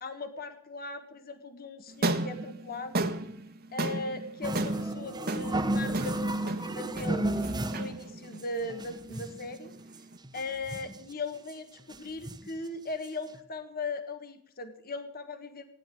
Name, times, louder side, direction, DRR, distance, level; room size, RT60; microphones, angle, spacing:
voice 1, 0.0-3.1 3.7-9.7 10.3-15.6, left 2 dB, 45° left, 8 dB, 1.5 m, -38 dB
sound 1, 1.9-10.2, right 2 dB, 45° right, 1.4 m, -35 dB
sound 2, 4.4-8.0 8.4-8.5 8.7-9.5 9.9-10.0 10.2-11.0 11.5-11.6 11.9-12.6 13.0-13.1 13.3-13.4, right 1 dB, 20° right, 1.2 m, -32 dB
17.0 x 10.5 x 7.6 m, 0.64 s
head